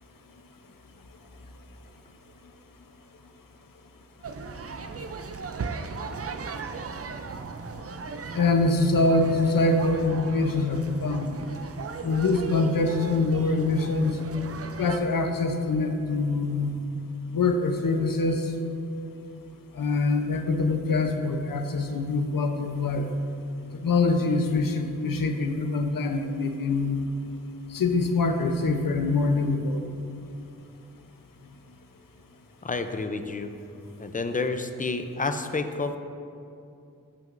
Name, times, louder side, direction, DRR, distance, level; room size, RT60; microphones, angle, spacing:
sound 1, 4.2-15.0, right 4 dB, 45° right, 0.5 m, -37 dB
voice 1, 8.3-11.3 12.0-14.1 14.8-16.8 17.3-18.5 19.7-23.0 23.8-27.0 27.7-29.8, left 3 dB, 80° left, 5 dB, 0.7 m, -24 dB
voice 2, 32.6-33.5 34.0-36.0, left 3 dB, 25° left, 7 dB, 0.5 m, -29 dB
14.5 x 6.2 x 2.6 m, 2.6 s
wide cardioid pair, 70°, 33 cm